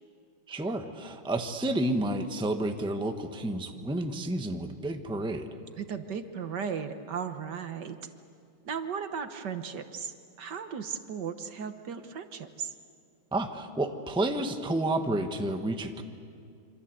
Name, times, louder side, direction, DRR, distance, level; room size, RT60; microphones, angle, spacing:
voice 1, 0.5-5.5 13.3-16.0, right 1 dB, 5° right, 5 dB, 1.0 m, -30 dB
voice 2, 5.7-8.0 8.6-12.7, right 7 dB, 60° right, 8 dB, 1.6 m, -36 dB
27.0 x 26.0 x 8.0 m, 2.4 s
omnidirectional pair, 2.1 m